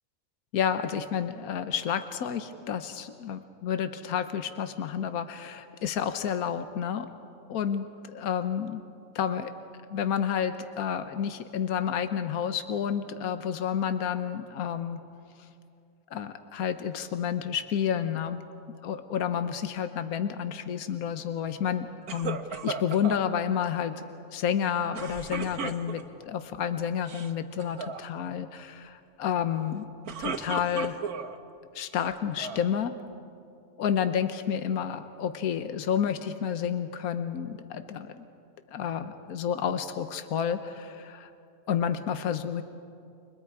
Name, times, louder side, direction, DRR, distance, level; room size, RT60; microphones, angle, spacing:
voice 1, 0.5-7.1 7.5-8.8 9.1-9.5 9.9-15.0 16.1-18.4 18.8-24.0 24.3-29.9 30.2-31.1 31.7-33.0 33.8-38.2 38.7-41.3 41.7-42.6, left 8 dB, 80° left, 9 dB, 1.3 m, -30 dB
sound 1, 22.1-23.2 24.9-26.2 26.9-27.3 27.6-28.0 29.8-31.4 31.9-32.7, right 5 dB, 85° right, 1.6 m, -35 dB
29.5 x 26.5 x 4.8 m, 2.5 s
omnidirectional pair, 1.5 m